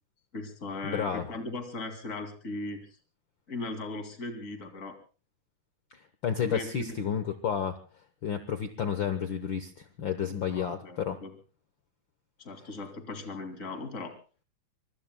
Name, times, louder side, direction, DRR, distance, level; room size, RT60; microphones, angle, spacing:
voice 1, 0.3-2.8 3.5-5.0 6.4-7.0 10.5-11.3 12.4-14.2, left 2 dB, 25° left, 5 dB, 2.7 m, -38 dB
voice 2, 0.8-1.3 6.2-7.8 8.2-11.2, left 7 dB, 70° left, 9 dB, 1.1 m, -31 dB
25.5 x 23.5 x 2.2 m, 0.35 s
omnidirectional pair, 3.5 m